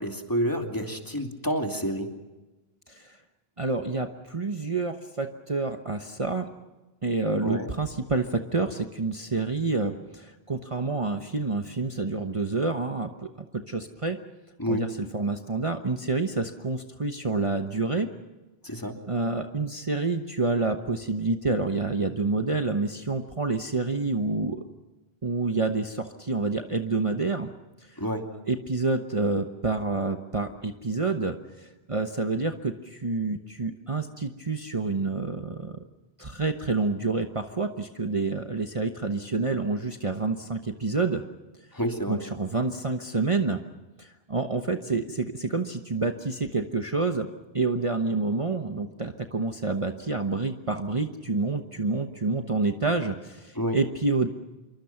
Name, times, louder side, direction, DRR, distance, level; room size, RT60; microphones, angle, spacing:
voice 1, 0.0-2.1 7.4-7.7 14.6-14.9 18.6-19.0 28.0-28.3 41.7-42.2 53.5-53.8, equal, 20° left, 3 dB, 2.7 m, -29 dB
voice 2, 3.6-6.5 7.0-14.2 14.7-18.1 19.1-24.6 25.2-27.5 28.5-35.8 36.2-41.2 42.1-43.6 44.0-47.3 47.5-54.3, right 3 dB, 30° right, 5 dB, 1.1 m, -28 dB
27.5 x 23.5 x 5.9 m, 1.1 s
omnidirectional pair, 1.1 m